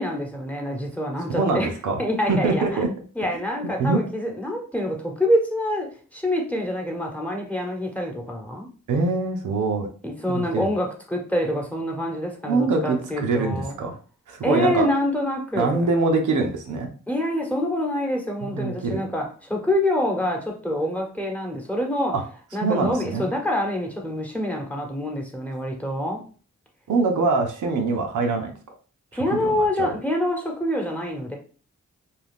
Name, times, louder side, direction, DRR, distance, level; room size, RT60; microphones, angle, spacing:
voice 1, 0.0-1.7 2.0-2.8 3.1-8.7 10.0-13.7 14.4-15.9 17.1-22.1 22.5-26.2 29.1-31.4, left 1 dB, 5° left, 0 dB, 1.0 m, -26 dB
voice 2, 1.3-2.0 2.3-2.9 3.6-4.0 8.9-9.9 10.3-10.7 12.4-14.0 14.3-14.9 15.6-16.9 18.4-19.0 22.1-22.2 22.6-23.3 26.9-28.5 29.3-29.9, right 3 dB, 75° right, 3 dB, 0.6 m, -24 dB
2.4 x 2.3 x 3.4 m, 0.40 s
supercardioid pair, 45°, 30 cm